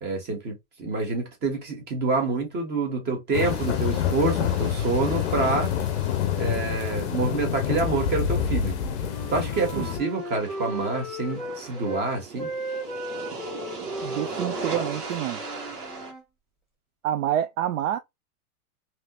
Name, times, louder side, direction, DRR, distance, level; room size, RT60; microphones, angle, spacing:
voice 1, 0.0-5.7 6.4-8.8 9.3-12.5, right 3 dB, 20° right, 1.3 m, -27 dB
sound 1, 3.3-10.0, left 9 dB, 50° left, 0.6 m, -27 dB
sound 2, 3.4-16.1, right 4 dB, 85° right, 1.6 m, -39 dB
Wind instrument woodwind instrument, 8.7-12.0 12.4-16.2, equal, ahead, 1.3 m, -37 dB
voice 2, 14.0-15.4 17.0-18.0, right 11 dB, 60° right, 0.5 m, -27 dB
3.3 x 2.9 x 2.3 m
hypercardioid pair, 150°, 45 cm